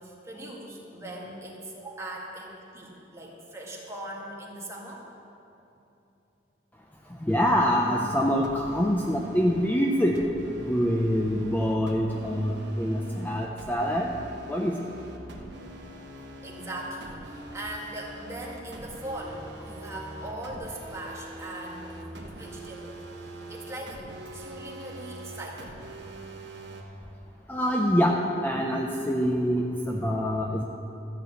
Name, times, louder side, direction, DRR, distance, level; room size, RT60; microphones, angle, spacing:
voice 1, 0.0-5.1 16.4-24.1 24.3-25.8, right 1 dB, 15° right, -3 dB, 1.9 m, -40 dB
voice 2, 7.2-10.2 10.6-14.1 14.5-14.9 27.5-28.2 28.4-30.6, equal, 10° left, -1 dB, 0.6 m, -25 dB
sound 1, 7.3-26.8, right 1 dB, 65° right, 1.3 m, -43 dB
13.5 x 6.2 x 8.2 m, 2.9 s
head